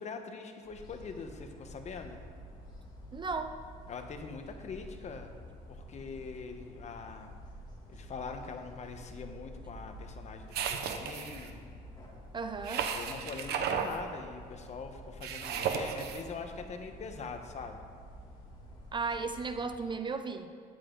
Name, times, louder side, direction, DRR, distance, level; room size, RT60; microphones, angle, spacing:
voice 1, 0.0-2.2 3.9-5.3 5.7-7.3 7.9-11.6 12.9-17.8, left 5 dB, 40° left, 5 dB, 1.2 m, -43 dB
sound 1, 0.6-19.8, equal, 25° left, 2.7 m, -50 dB
voice 2, 3.1-3.6 12.3-12.9 18.9-20.5, right 4 dB, 30° right, 8 dB, 0.6 m, -35 dB
sound 2, 10.5-11.5 12.6-13.9 15.2-16.2, right 7 dB, 75° right, 1.1 m, -34 dB
14.0 x 10.5 x 3.9 m, 2.2 s
cardioid pair, 110°, 17 cm